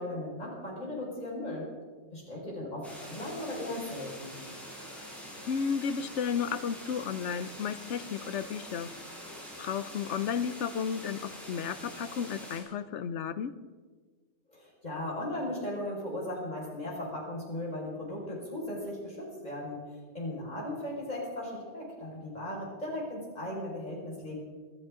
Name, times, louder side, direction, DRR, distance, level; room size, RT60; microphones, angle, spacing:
voice 1, 0.0-1.7 2.1-4.4 14.5-24.3, left 1 dB, 35° left, -4 dB, 5.5 m, -37 dB
sound 1, 2.8-12.6, equal, ahead, 6.1 m, -45 dB
voice 2, 5.5-8.9 9.6-13.5, left 7 dB, 70° left, 13 dB, 1.0 m, -33 dB
26.5 x 13.5 x 3.7 m, 1.5 s
omnidirectional pair, 1.2 m